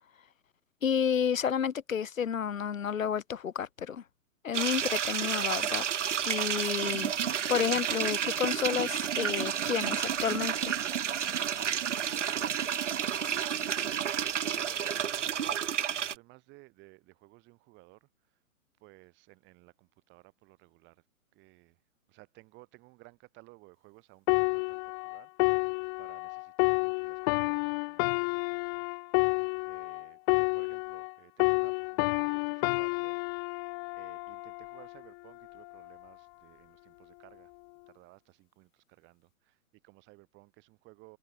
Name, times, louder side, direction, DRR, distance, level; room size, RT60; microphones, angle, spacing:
voice 1, 0.8-4.0 4.4-5.8 6.2-7.1 7.5-10.7, left 7 dB, 65° left, 1.0 m, -31 dB
sound 1, 4.5-16.1, right 9 dB, 55° right, 1.1 m, -31 dB
voice 2, 11.6-13.5 14.1-15.6 15.9-18.4 18.8-21.0 21.3-21.8 22.1-25.6 26.0-29.0 29.3-33.2 33.9-37.5 37.9-41.2, right 23 dB, 25° right, 6.8 m, -57 dB
sound 2, 24.3-31.1 31.4-35.0 35.6-35.8, left 40 dB or more, 20° left, 0.8 m, -30 dB
figure-of-eight pair, 120°, 42 cm